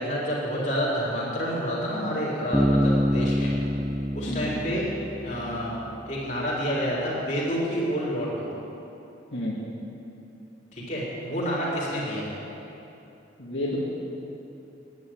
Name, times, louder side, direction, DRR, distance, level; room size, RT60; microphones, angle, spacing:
voice 1, 0.0-3.5 4.1-4.8 5.2-8.5 10.7-12.3, equal, 40° left, -6 dB, 3.6 m, -28 dB
Bass guitar, 2.5-6.2, equal, 5° left, 0.5 m, -26 dB
voice 2, 13.4-13.8, left 1 dB, 80° left, -5 dB, 2.3 m, -31 dB
11.0 x 10.5 x 8.8 m, 2.9 s
head